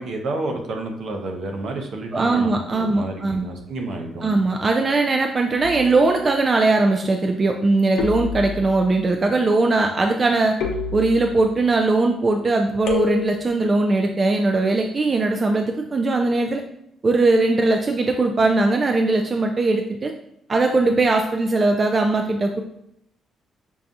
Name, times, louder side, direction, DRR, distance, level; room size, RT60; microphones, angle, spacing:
voice 1, 0.0-4.4, right 2 dB, 70° right, 2 dB, 0.6 m, -30 dB
voice 2, 2.1-3.5 4.2-10.6 10.9-16.6 17.0-20.1 20.5-22.6, right 3 dB, 35° right, 3 dB, 0.3 m, -20 dB
sound 1, 5.6-6.1 8.0-8.9 10.6-11.5 12.9-13.6, left 6 dB, 80° left, 0.5 m, -29 dB
5.3 x 2.3 x 2.5 m, 0.75 s
cardioid pair, 90°, 0 cm